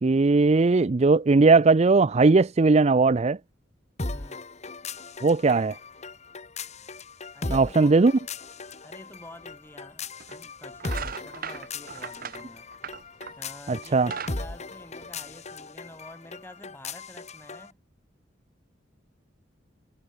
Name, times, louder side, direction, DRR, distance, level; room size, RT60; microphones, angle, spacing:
voice 1, 0.0-3.4 5.2-5.8 7.5-8.1 13.7-14.1, right 3 dB, 35° right, 0.5 m, -19 dB
sound 1, 4.0-17.7, left 3 dB, 40° left, 1.9 m, -38 dB
voice 2, 4.1-4.5 6.8-6.9 7.3-7.9 8.8-12.7 13.4-17.8, left 1 dB, 10° left, 7.6 m, -48 dB
sound 2, 9.4-9.5 10.2-10.4 10.8-13.5 13.9-15.5, right 6 dB, 50° right, 2.0 m, -38 dB
head